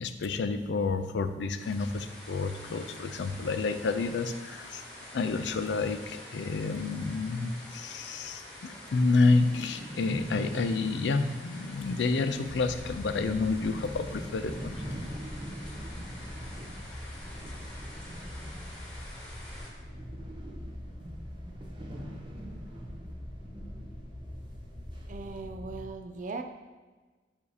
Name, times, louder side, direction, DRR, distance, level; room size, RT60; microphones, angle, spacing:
voice 1, 0.0-4.8 5.1-14.7, left 3 dB, 75° left, 9 dB, 0.4 m, -29 dB
sound 1, 1.6-19.7, left 1 dB, 5° left, 1.4 m, -47 dB
sound 2, 8.3-8.4 8.7-8.8 8.9-19.2 19.4-23.9 24.2-24.3 24.9-25.4, right 1 dB, 30° right, 0.8 m, -44 dB
sound 3, 12.4-25.9, left 1 dB, 20° left, 0.6 m, -43 dB
voice 2, 25.1-26.4, right 3 dB, 45° right, 6 dB, 0.4 m, -39 dB
7.0 x 2.8 x 4.8 m, 1.3 s
head